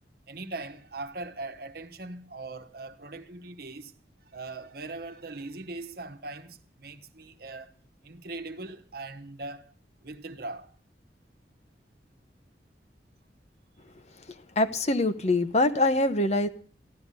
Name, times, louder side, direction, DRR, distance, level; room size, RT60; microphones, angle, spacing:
voice 1, 0.3-3.9 4.3-7.7 8.0-9.7 10.0-10.7, right 2 dB, 60° right, 1.3 m, -40 dB
voice 2, 14.6-16.5, left 2 dB, 40° left, 0.9 m, -24 dB
14.5 x 12.0 x 6.8 m
head